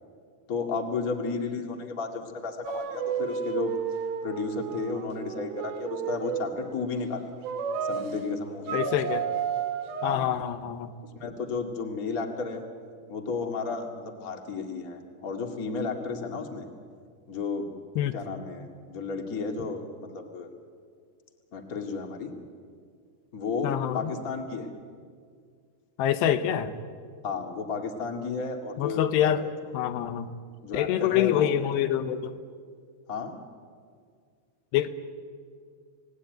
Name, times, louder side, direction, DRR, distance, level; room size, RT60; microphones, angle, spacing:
voice 1, 0.5-3.7 4.2-7.3 7.8-9.2 10.0-10.3 11.2-12.6 13.1-16.6 17.3-17.7 18.0-20.5 21.5-22.3 23.3-24.7 27.2-29.5 30.6-31.5 33.1-33.4, left 4 dB, 35° left, 4 dB, 1.4 m, -33 dB
sound 1, 2.6-6.6 7.4-8.1 8.7-10.2, right 8 dB, 85° right, 3.6 m, -32 dB
voice 2, 8.7-9.2 10.0-10.9 18.0-18.1 23.6-24.1 26.0-26.8 28.8-29.4 29.7-30.3 30.7-32.3 34.7-34.9, left 11 dB, 85° left, 10 dB, 3.2 m, -26 dB
27.5 x 18.5 x 9.2 m, 2.1 s
omnidirectional pair, 4.8 m